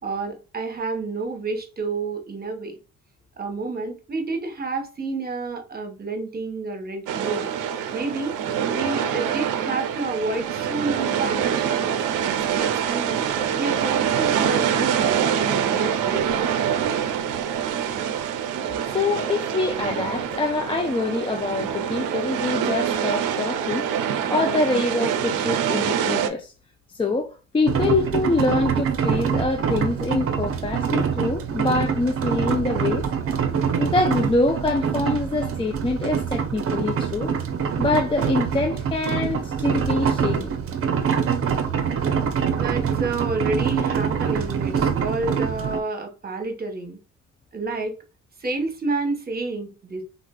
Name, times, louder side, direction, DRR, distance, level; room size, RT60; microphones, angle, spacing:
voice 1, 0.0-2.8 3.4-7.5 7.9-8.3 8.7-12.0 12.3-13.2 13.6-16.3 42.5-47.0 47.5-48.0 48.4-50.0, right 3 dB, 30° right, 1.0 m, -29 dB
sound 1, 7.1-26.3, right 8 dB, 90° right, 0.5 m, -25 dB
voice 2, 18.9-23.9 24.3-26.5 26.9-33.1 33.8-37.3 37.8-40.5, left 3 dB, 20° left, 0.4 m, -25 dB
sound 2, 27.7-45.8, right 7 dB, 50° right, 0.6 m, -25 dB
3.7 x 2.4 x 2.2 m
cardioid pair, 90°, 30 cm